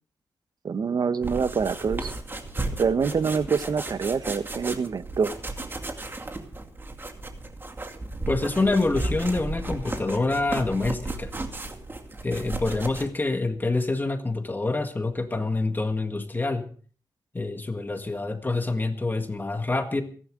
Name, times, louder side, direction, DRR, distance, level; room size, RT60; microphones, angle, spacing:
voice 1, 0.6-2.1 2.8-5.3, right 5 dB, 60° right, 13 dB, 0.9 m, -25 dB
sound 1, 1.2-13.1, right 2 dB, 30° right, 2.4 m, -34 dB
voice 2, 8.3-11.3 12.2-16.7 17.3-20.0, left 3 dB, 25° left, 6 dB, 1.8 m, -26 dB
28.5 x 11.0 x 3.7 m, 0.43 s
wide cardioid pair, 95°, 8 cm